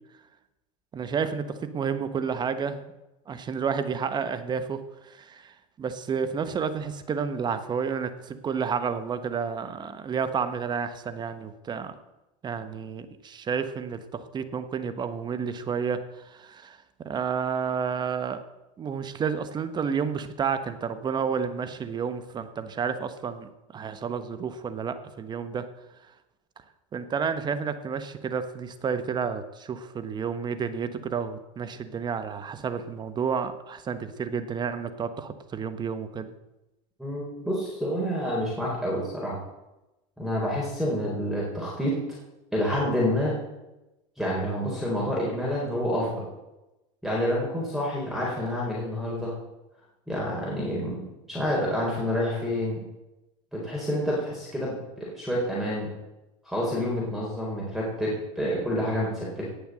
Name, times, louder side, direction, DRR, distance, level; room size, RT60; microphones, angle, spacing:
voice 1, 0.9-2.9 3.3-12.0 12.4-18.4 18.8-25.6 26.9-36.3, right 6 dB, 25° right, 10 dB, 1.3 m, -31 dB
voice 2, 37.0-39.4 40.2-42.0 42.5-43.4 44.2-46.3 47.0-49.3 50.1-51.0 51.3-52.8 53.5-55.9 56.4-59.4, equal, ahead, -4 dB, 4.2 m, -28 dB
18.0 x 6.9 x 7.7 m, 0.99 s
supercardioid pair, 130°, 17 cm